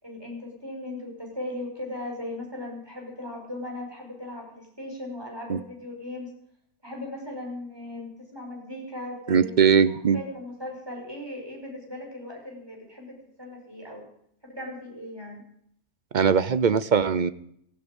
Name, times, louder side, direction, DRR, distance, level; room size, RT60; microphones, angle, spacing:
voice 1, 0.0-6.3 6.8-9.5 9.9-14.1 14.6-15.4, left 1 dB, 15° right, 0 dB, 5.7 m, -38 dB
voice 2, 9.3-10.2 16.1-17.3, right 6 dB, 45° right, 15 dB, 0.6 m, -20 dB
16.5 x 15.5 x 5.3 m, 0.70 s
omnidirectional pair, 1.5 m